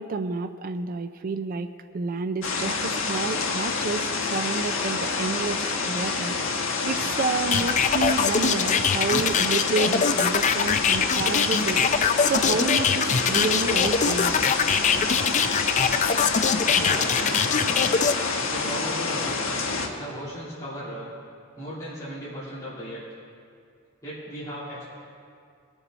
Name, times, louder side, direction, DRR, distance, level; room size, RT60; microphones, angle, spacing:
voice 1, 0.0-4.0 4.3-6.4 6.9-11.9 12.2-14.4, right 4 dB, 45° right, 8 dB, 0.4 m, -29 dB
sound 1, 2.4-19.9, left 4 dB, 85° left, 1.2 m, -28 dB
sound 2, 6.9-18.1, equal, ahead, 3.1 m, -48 dB
sound 3, 7.5-18.1, left 6 dB, 40° left, 0.4 m, -22 dB
voice 2, 16.7-17.7 18.4-21.1 21.5-23.0 24.0-24.8, equal, 15° left, -11 dB, 3.0 m, -36 dB
21.0 x 7.1 x 4.0 m, 2.3 s
head